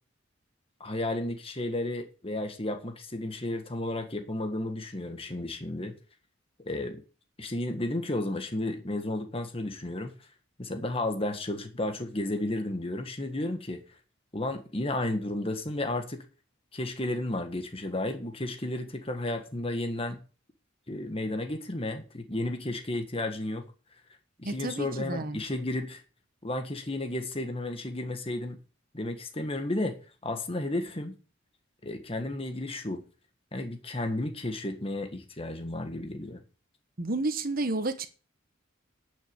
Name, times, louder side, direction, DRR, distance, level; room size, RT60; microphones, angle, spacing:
voice 1, 0.8-5.9 6.6-7.0 7.4-10.1 10.6-13.8 14.3-16.2 16.7-20.2 20.9-23.6 24.4-26.0 26.4-28.6 28.9-30.0 30.2-31.1 31.8-33.0 33.5-36.4, left 1 dB, 30° left, 1.6 m, -33 dB
voice 2, 24.4-25.4 37.0-38.1, right 2 dB, 45° right, 1.3 m, -31 dB
10.5 x 6.7 x 8.2 m
head